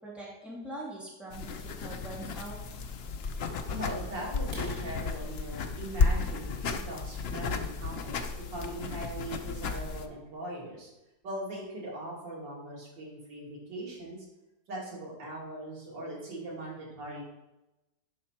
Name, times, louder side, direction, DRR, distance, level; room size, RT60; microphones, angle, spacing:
voice 1, 0.0-2.6, right 2 dB, ahead, -6 dB, 2.6 m, -42 dB
sound 1, 1.3-10.1, left 4 dB, 75° left, 0.5 m, -33 dB
voice 2, 3.7-10.9 11.2-14.2 14.7-17.2, right 1 dB, 85° right, -4 dB, 3.2 m, -40 dB
sound 2, 4.4-8.2 8.7-8.9 9.3-9.4 9.9-10.0 10.3-10.4 10.9-11.0 11.2-11.7, right 1 dB, 35° right, 1.8 m, -52 dB
11.0 x 5.9 x 4.4 m, 0.97 s
omnidirectional pair, 1.9 m